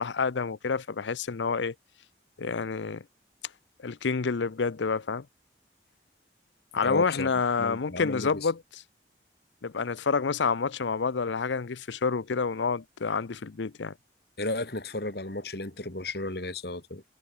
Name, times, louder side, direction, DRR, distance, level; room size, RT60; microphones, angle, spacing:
voice 1, 0.0-1.7 2.4-3.0 3.8-5.3 6.7-8.6 9.6-13.9, left 5 dB, 85° left, 0.6 m, -28 dB
voice 2, 6.8-7.3 7.6-8.5 14.4-17.0, left 2 dB, 60° left, 2.6 m, -33 dB
head